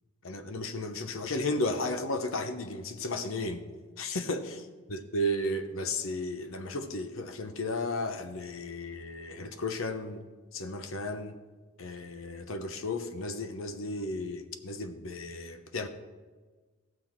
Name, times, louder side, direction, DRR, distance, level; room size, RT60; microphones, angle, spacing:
voice 1, 0.2-3.7 4.0-10.2 10.5-11.4 11.8-15.9, left 1 dB, 70° left, 9 dB, 0.9 m, -34 dB
16.5 x 6.2 x 4.5 m, 1.4 s
head